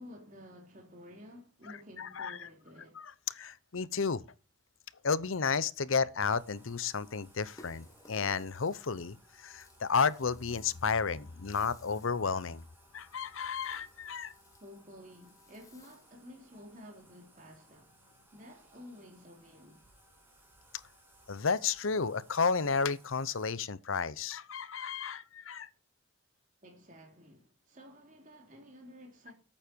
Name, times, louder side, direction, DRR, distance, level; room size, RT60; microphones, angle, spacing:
voice 1, 0.0-3.0 14.6-17.9 18.3-19.9 26.6-29.3, left 1 dB, 40° right, 3.2 m, -52 dB
voice 2, 2.0-2.5 3.0-4.2 5.0-12.6 12.9-14.3 20.7-20.8 21.3-25.7, left 5 dB, 80° left, 0.8 m, -32 dB
Bathtub (filling or washing), 6.3-23.5, right 1 dB, 10° right, 3.7 m, -63 dB
Rattle (instrument), 7.3-16.3, left 2 dB, 15° left, 1.5 m, -61 dB
12.0 x 8.9 x 4.5 m
head